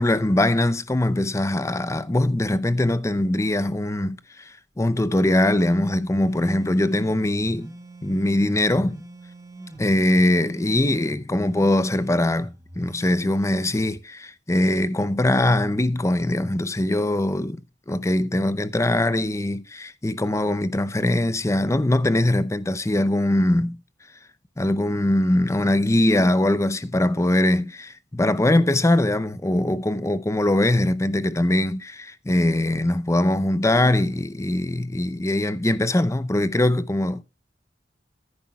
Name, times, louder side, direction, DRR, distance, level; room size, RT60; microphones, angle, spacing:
voice 1, 0.0-7.7 8.0-9.0 9.8-17.6 17.9-23.8 24.6-37.2, left 1 dB, 15° left, 0.6 m, -22 dB
sound 1, 5.4-14.0, right 1 dB, 20° right, 1.4 m, -43 dB
14.5 x 9.7 x 2.3 m
head